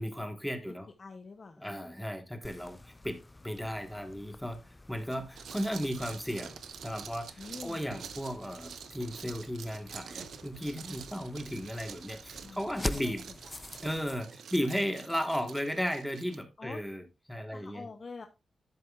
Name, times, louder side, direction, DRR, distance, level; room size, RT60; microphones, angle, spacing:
voice 1, 0.0-0.9 1.6-4.6 4.9-6.6 6.8-13.2 13.8-17.0 17.3-17.9, equal, ahead, 1.4 m, -35 dB
voice 2, 0.7-1.7 7.4-7.9 12.4-13.2 13.4-13.5 16.6-16.8 17.5-18.3, left 4 dB, 45° left, 0.9 m, -46 dB
sound 1, 2.4-14.2, left 2 dB, 20° left, 0.4 m, -45 dB
sound 2, 5.1-16.4, right 7 dB, 90° right, 0.8 m, -47 dB
11.0 x 7.6 x 2.4 m
cardioid pair, 85°, 0 cm